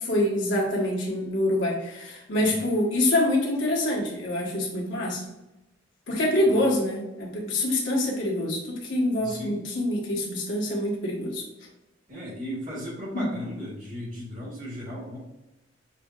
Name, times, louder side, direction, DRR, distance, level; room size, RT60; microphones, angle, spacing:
voice 1, 0.0-5.2 6.1-11.4 13.1-13.3, left 1 dB, 70° left, -3 dB, 1.2 m, -25 dB
voice 2, 9.2-9.6 12.1-15.2, equal, 45° right, -6 dB, 1.4 m, -36 dB
6.3 x 2.7 x 2.4 m, 0.98 s
head